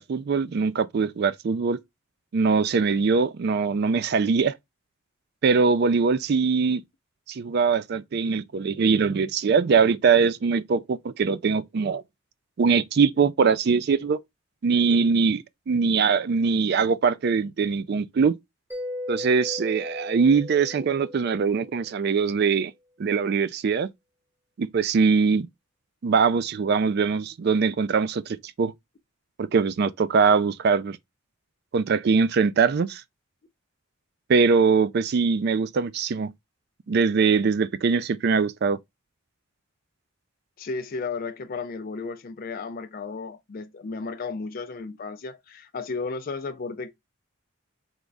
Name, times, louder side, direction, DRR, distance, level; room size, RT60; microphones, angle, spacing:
voice 1, 0.0-1.8 2.3-4.5 5.4-6.8 7.3-12.0 12.6-14.2 14.6-18.3 19.1-22.7 23.0-23.9 24.6-25.5 26.0-28.7 29.4-31.0 31.7-33.0 34.3-36.3 36.9-38.8, right 5 dB, 50° right, 0.3 m, -22 dB
Mallet percussion, 18.7-22.2, left 1 dB, 10° right, 1.0 m, -37 dB
voice 2, 40.6-46.9, left 4 dB, 45° left, 0.4 m, -34 dB
3.6 x 3.0 x 3.8 m
head